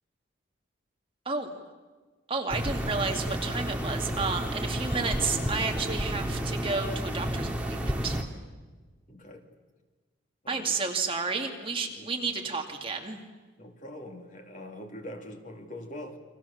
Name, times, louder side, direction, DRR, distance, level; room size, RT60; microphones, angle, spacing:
voice 1, 2.3-8.2 10.5-13.2, right 4 dB, 25° right, 2 dB, 2.3 m, -31 dB
sound 1, 2.5-8.2, equal, 5° right, 2.2 m, -31 dB
voice 2, 9.1-9.5 10.4-10.8 11.9-12.4 13.6-16.2, left 1 dB, 40° left, 4 dB, 2.7 m, -43 dB
29.5 x 24.0 x 7.3 m, 1.3 s
head